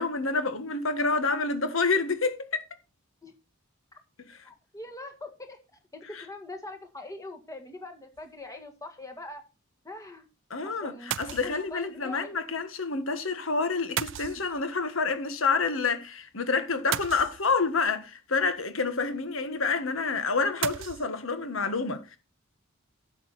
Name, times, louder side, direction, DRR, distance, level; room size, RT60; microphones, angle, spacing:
voice 1, 0.0-2.6 4.3-4.4 10.5-22.2, left 4 dB, 70° left, 1.5 m, -28 dB
voice 2, 4.4-5.6 5.9-9.4 9.8-10.3 10.6-12.4, left 2 dB, 15° left, 1.8 m, -42 dB
sound 1, 8.2-8.4 11.1-11.8 14.0-14.9 16.9-17.8 20.6-21.1, right 11 dB, 65° right, 0.4 m, -34 dB
11.0 x 7.2 x 4.2 m
head